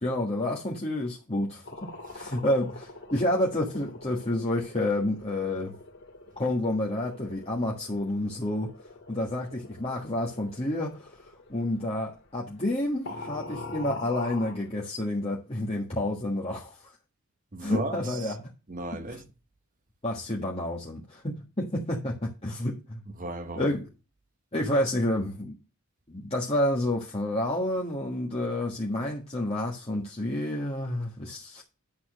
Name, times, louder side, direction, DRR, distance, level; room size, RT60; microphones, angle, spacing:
voice 1, 0.0-1.9 2.1-5.7 6.4-8.7 9.1-11.2 11.5-16.9 17.6-18.4 20.0-23.0 23.6-23.8 24.5-25.6 26.1-31.6, left 1 dB, 25° left, 1.6 m, -29 dB
sound 1, 1.6-12.8 13.1-14.7, left 3 dB, 50° left, 2.0 m, -44 dB
voice 2, 1.9-2.3 17.5-18.4 18.7-19.3 23.1-23.7, right 2 dB, 35° right, 1.0 m, -36 dB
10.5 x 4.2 x 6.4 m
head